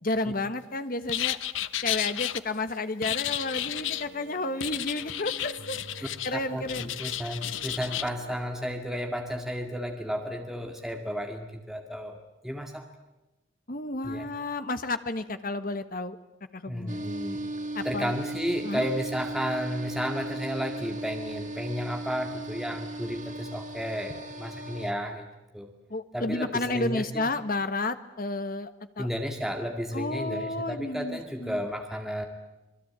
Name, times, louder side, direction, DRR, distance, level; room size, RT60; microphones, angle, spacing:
voice 1, 0.0-1.4 1.8-6.9 13.7-16.2 16.5-17.0 17.7-18.1 18.6-18.9 25.9-28.7 29.0-29.1 29.9-31.6, left 2 dB, 45° left, 10 dB, 1.4 m, -31 dB
sound 1, 1.1-2.4 3.0-4.1 4.6-6.3 6.6-8.1, left 12 dB, 80° left, 0.9 m, -32 dB
sound 2, 3.2-8.5, right 1 dB, 65° right, 2.9 m, -48 dB
voice 2, 6.5-12.9 14.0-14.3 16.7-17.5 17.8-25.3 25.5-25.7 26.1-27.3 29.0-32.3, equal, ahead, 3 dB, 2.0 m, -33 dB
sound 3, 16.9-24.9, right 2 dB, 40° right, 2.5 m, -37 dB
27.0 x 21.5 x 8.9 m, 1.0 s
head